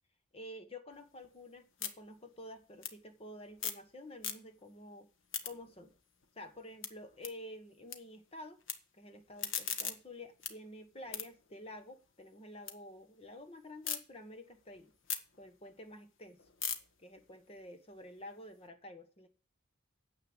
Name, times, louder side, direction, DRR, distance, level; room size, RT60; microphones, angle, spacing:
voice 1, 0.3-5.1 5.4-5.9 6.3-8.6 8.9-14.9 15.4-16.4 17.0-19.3, left 1 dB, 30° left, 7 dB, 1.5 m, -50 dB
sound 1, 0.9-3.9 4.1-4.8 5.1-8.0 8.3-8.7 9.2-12.8 13.1-14.0 14.4-18.6, left 8 dB, 65° left, 1.4 m, -43 dB
9.8 x 8.0 x 7.4 m, 0.38 s
head